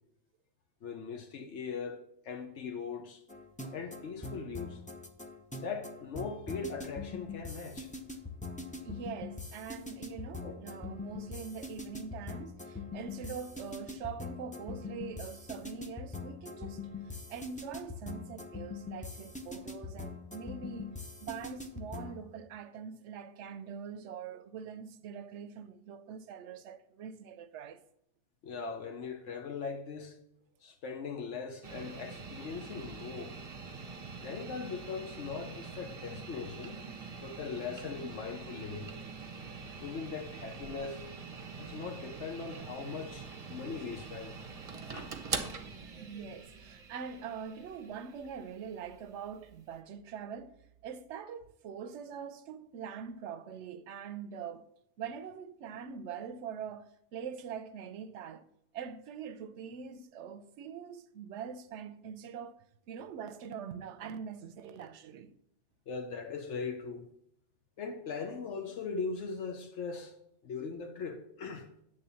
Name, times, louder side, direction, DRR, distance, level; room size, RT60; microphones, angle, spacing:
voice 1, 0.8-2.0 2.2-3.2 3.7-4.8 5.6-7.9 10.4-10.5 28.4-30.2 30.6-33.3 34.2-36.8 37.2-38.9 39.8-41.0 41.6-44.4 44.9-45.1 65.9-67.1 67.8-70.1 70.4-71.7, left 5 dB, 80° left, 1.1 m, -40 dB
sound 1, 3.3-22.2, left 3 dB, 10° left, 0.4 m, -43 dB
voice 2, 8.8-16.8 17.3-20.9 21.2-27.8 31.7-31.8 46.0-50.6 50.8-54.6 55.0-58.4 58.7-65.3, right 7 dB, 80° right, 0.9 m, -43 dB
sound 2, 31.6-49.7, right 4 dB, 35° right, 0.7 m, -44 dB
8.9 x 3.4 x 6.8 m
omnidirectional pair, 1.2 m